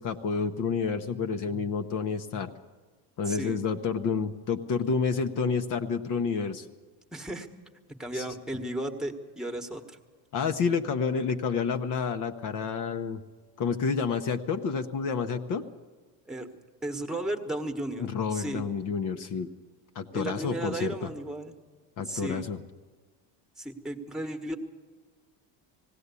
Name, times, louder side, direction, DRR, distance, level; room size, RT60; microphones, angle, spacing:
voice 1, 0.0-2.5 3.2-6.7 8.1-8.2 10.3-13.2 13.6-15.6 18.0-19.5 19.9-21.1 22.0-22.6, left 5 dB, 45° left, 7 dB, 0.9 m, -29 dB
voice 2, 3.3-3.6 7.1-7.5 8.0-10.0 16.3-16.5 16.8-18.6 20.1-21.5 22.1-22.5 23.6-24.6, right 1 dB, ahead, 6 dB, 1.3 m, -34 dB
20.0 x 16.5 x 8.2 m, 1.4 s
cardioid pair, 145°, 44 cm